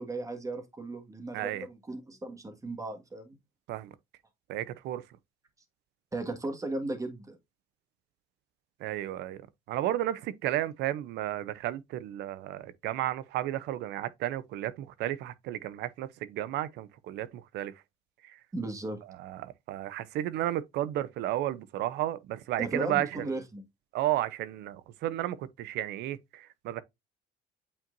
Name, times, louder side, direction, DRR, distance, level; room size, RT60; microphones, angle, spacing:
voice 1, 0.0-3.4 6.1-7.4 18.5-19.0 22.6-23.6, right 2 dB, 20° right, 1.7 m, -36 dB
voice 2, 1.3-1.7 3.7-3.9 4.5-5.0 8.8-9.4 9.7-17.7 18.2-18.4 19.2-23.2 23.9-26.8, right 13 dB, 80° right, 0.7 m, -33 dB
8.7 x 4.4 x 2.6 m
cardioid pair, 110°, 17 cm